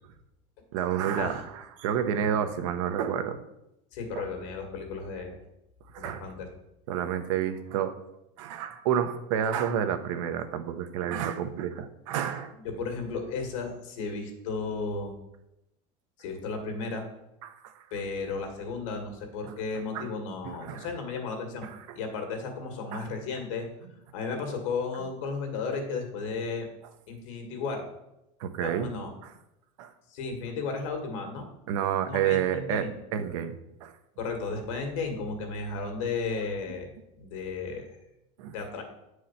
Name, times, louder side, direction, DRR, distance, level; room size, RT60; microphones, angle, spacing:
voice 1, 0.7-3.4 4.1-4.3 5.9-6.2 6.9-8.0 8.4-12.5 17.4-17.8 19.4-19.5 19.9-20.1 20.4-20.9 21.6-22.0 22.9-23.1 28.4-28.9 29.2-29.3 29.8-29.9 31.7-33.6 33.8-33.9 36.7-36.8 38.4-38.5, right 9 dB, 75° right, 8 dB, 1.0 m, -30 dB
voice 2, 3.9-5.3 6.0-6.5 12.6-15.1 16.2-17.1 17.9-21.7 21.9-23.7 24.1-26.7 27.1-27.9 28.6-29.1 30.1-31.5 32.1-32.9 34.2-36.9 37.2-37.9 38.5-38.8, left 4 dB, 75° left, 4 dB, 2.1 m, -34 dB
9.5 x 4.9 x 5.8 m, 0.89 s
cardioid pair, 175°, 16 cm